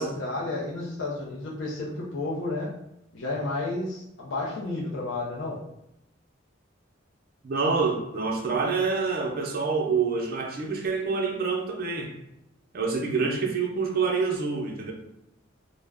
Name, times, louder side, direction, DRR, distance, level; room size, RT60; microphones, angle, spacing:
voice 1, 0.0-2.7 3.1-5.6, left 2 dB, 70° left, -5 dB, 0.5 m, -31 dB
voice 2, 7.4-12.1 12.7-14.9, right 4 dB, 50° right, 0 dB, 0.6 m, -27 dB
2.3 x 2.1 x 3.3 m, 0.84 s
head